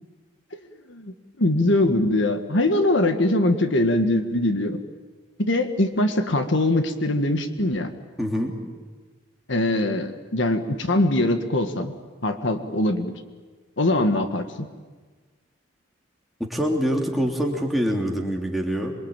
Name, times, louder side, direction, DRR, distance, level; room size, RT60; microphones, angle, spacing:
voice 1, 0.9-4.8 5.4-7.9 9.5-11.9 12.2-13.1 13.8-14.7, left 1 dB, 65° left, 7 dB, 1.6 m, -22 dB
voice 2, 8.2-8.5 16.4-18.9, equal, ahead, -1 dB, 3.2 m, -25 dB
27.0 x 23.0 x 9.0 m, 1.4 s
head